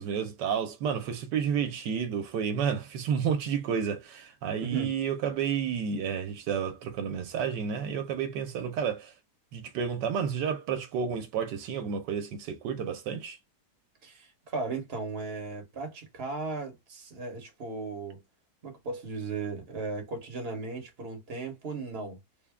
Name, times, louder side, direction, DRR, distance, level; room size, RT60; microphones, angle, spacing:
voice 1, 0.0-9.1 9.5-13.4, right 7 dB, 80° right, 1.3 m, -31 dB
voice 2, 4.6-4.9 14.0-18.2 18.6-22.2, right 3 dB, 40° right, 1.3 m, -36 dB
3.6 x 2.1 x 3.5 m
omnidirectional pair, 1.9 m